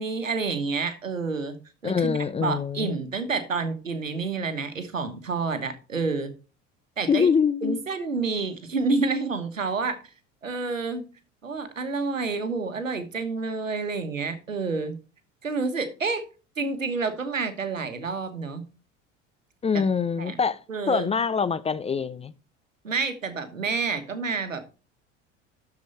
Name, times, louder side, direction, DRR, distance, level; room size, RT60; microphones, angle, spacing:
voice 1, 0.0-1.6 1.8-6.3 7.0-7.3 7.6-10.0 10.4-11.0 11.4-15.0 15.4-16.2 16.6-18.6 20.2-20.4 20.7-21.1 22.8-24.6, right 4 dB, 85° right, 1.3 m, -29 dB
voice 2, 1.8-2.9 7.1-7.8 19.6-20.6 20.9-22.3, left 6 dB, 15° left, 0.5 m, -24 dB
12.5 x 4.8 x 4.2 m
figure-of-eight pair, 65°, 38 cm